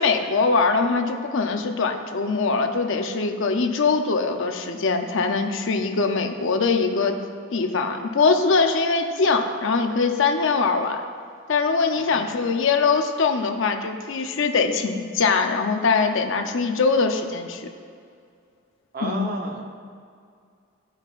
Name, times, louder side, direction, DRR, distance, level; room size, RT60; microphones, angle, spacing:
voice 1, 0.0-7.2 7.5-11.0 11.5-17.6 19.0-19.3, left 4 dB, 65° left, 5 dB, 0.6 m, -22 dB
voice 2, 11.9-12.5 18.9-19.6, right 2 dB, 45° right, 1 dB, 0.9 m, -33 dB
15.5 x 5.6 x 2.5 m, 2.3 s
head